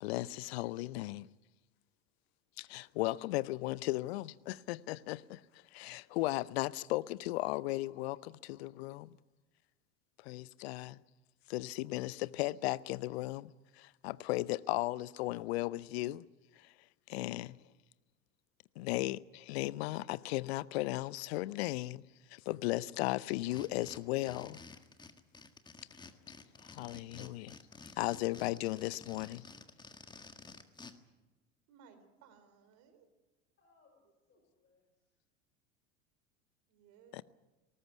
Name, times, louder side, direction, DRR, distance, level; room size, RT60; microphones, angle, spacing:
voice 1, 0.0-1.3 2.6-9.2 10.2-11.0 11.5-16.2 16.5-17.7 18.7-24.6 25.9-26.1 26.6-27.6 27.9-29.5 37.1-37.2, left 18 dB, 55° left, 0.7 m, -36 dB
sound 1, 23.3-30.9, left 3 dB, 10° left, 1.7 m, -52 dB
voice 2, 31.7-33.1 36.7-37.2, right 6 dB, 45° right, 3.9 m, -61 dB
voice 3, 33.6-35.2, left 4 dB, 30° left, 5.3 m, -71 dB
20.0 x 18.5 x 9.5 m
figure-of-eight pair, 80°, 37 cm